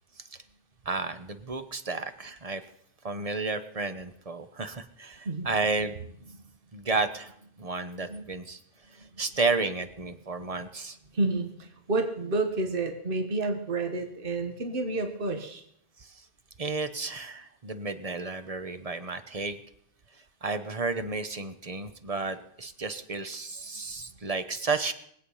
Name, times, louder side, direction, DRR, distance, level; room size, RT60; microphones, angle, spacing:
voice 1, 0.8-2.6 3.0-5.9 6.7-8.6 9.0-11.0 16.0-16.2 16.6-19.6 20.4-24.9, right 3 dB, 35° right, 9 dB, 1.0 m, -32 dB
voice 2, 11.1-15.6 23.7-23.9, right 2 dB, 60° right, 6 dB, 1.6 m, -30 dB
22.0 x 8.6 x 5.6 m, 0.71 s
omnidirectional pair, 1.1 m